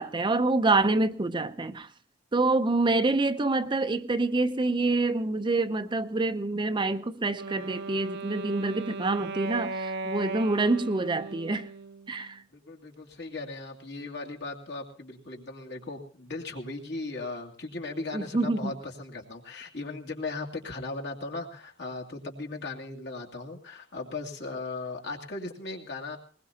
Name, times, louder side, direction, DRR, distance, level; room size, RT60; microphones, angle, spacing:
voice 1, 0.0-1.9 2.3-11.7 12.1-12.4 18.1-18.7, right 2 dB, 25° right, 0.6 m, -26 dB
Wind instrument woodwind instrument, 7.3-12.4, right 3 dB, 60° right, 0.8 m, -37 dB
voice 2, 12.5-26.2, left 3 dB, 65° left, 2.5 m, -37 dB
20.5 x 20.5 x 2.8 m
head